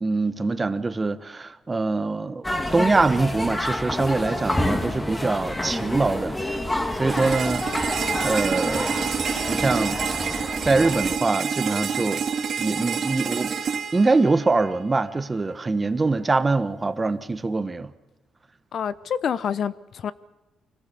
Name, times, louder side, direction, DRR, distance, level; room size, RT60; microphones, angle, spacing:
voice 1, 0.0-2.5 2.7-6.3 6.9-7.7 8.2-9.1 9.5-10.0 10.6-12.2 12.6-13.6 13.9-17.9, right 3 dB, 25° right, 1.2 m, -23 dB
sound 1, 2.4-11.2, left 1 dB, 15° left, 2.0 m, -28 dB
sound 2, 7.1-15.1, right 6 dB, 55° right, 2.1 m, -28 dB
voice 2, 18.7-20.1, left 8 dB, 60° left, 0.8 m, -27 dB
25.0 x 18.0 x 6.9 m
cardioid pair, 90°, 0 cm